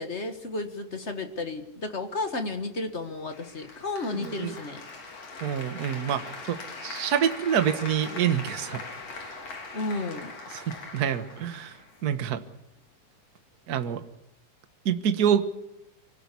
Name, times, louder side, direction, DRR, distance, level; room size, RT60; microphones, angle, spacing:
voice 1, 0.0-4.8 9.7-10.3, left 2 dB, 35° left, 7 dB, 1.2 m, -33 dB
Applause, 3.3-12.3, left 3 dB, 55° left, 4.5 m, -41 dB
voice 2, 4.1-4.5 5.4-6.6 6.8-8.8 10.5-11.7 12.0-12.4 13.7-14.0 14.8-15.4, right 8 dB, 50° right, 10 dB, 1.2 m, -26 dB
24.5 x 17.0 x 8.4 m, 0.87 s
omnidirectional pair, 3.5 m